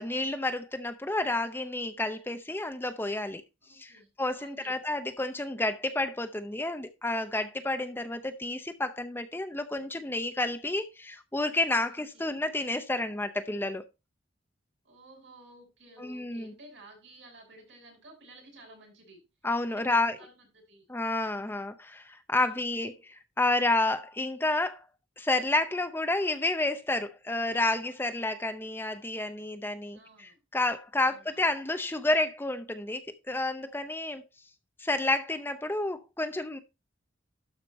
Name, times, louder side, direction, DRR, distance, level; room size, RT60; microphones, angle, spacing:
voice 1, 0.0-3.4 3.7-13.8 16.0-16.5 19.4-20.2 20.9-24.8 25.2-34.2 34.8-36.6, left 2 dB, 10° left, 0.6 m, -30 dB
voice 2, 3.6-4.8 11.9-12.3 14.8-19.2 19.7-20.9 22.3-22.6 29.9-30.4 31.0-31.4, right 1 dB, 70° right, 6.7 m, -54 dB
12.5 x 5.1 x 4.2 m
head